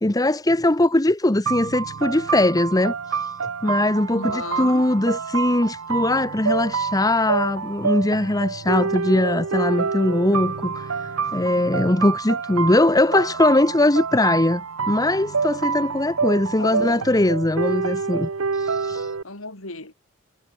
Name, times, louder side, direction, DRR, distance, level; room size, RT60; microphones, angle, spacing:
voice 1, 0.0-2.9 3.6-11.0 11.3-18.3 18.6-19.1, left 1 dB, 20° left, 0.9 m, -20 dB
sound 1, 1.5-19.2, right 5 dB, 80° right, 0.9 m, -27 dB
voice 2, 4.1-4.8 16.6-17.0 19.2-19.9, left 3 dB, 75° left, 5.5 m, -33 dB
head